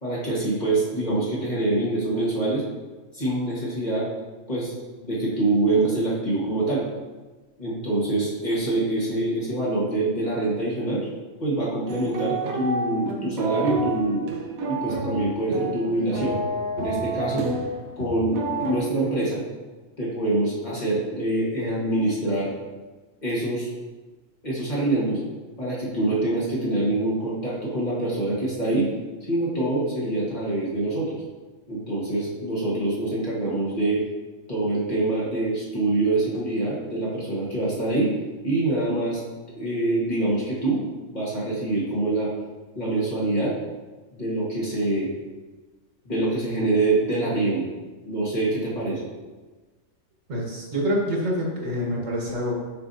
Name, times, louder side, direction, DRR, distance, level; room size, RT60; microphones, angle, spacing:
voice 1, 0.0-2.6 3.1-4.1 4.5-4.7 5.0-6.9 7.6-11.0 11.4-14.3 14.7-16.4 16.8-17.5 18.0-19.4 20.0-22.5 23.2-23.7 24.4-25.2 25.6-28.9 29.3-31.2 31.7-34.0 34.5-38.1 38.4-39.2 39.5-40.8 41.1-42.3 42.7-43.5 44.1-45.1 46.0-47.7 48.0-49.0, right 2 dB, 35° left, -7 dB, 1.5 m, -25 dB
sound 1, 11.9-18.8, right 3 dB, 80° right, 1.2 m, -29 dB
voice 2, 50.3-52.5, equal, 65° right, -3 dB, 1.7 m, -26 dB
6.5 x 5.5 x 2.7 m, 1.3 s
omnidirectional pair, 1.4 m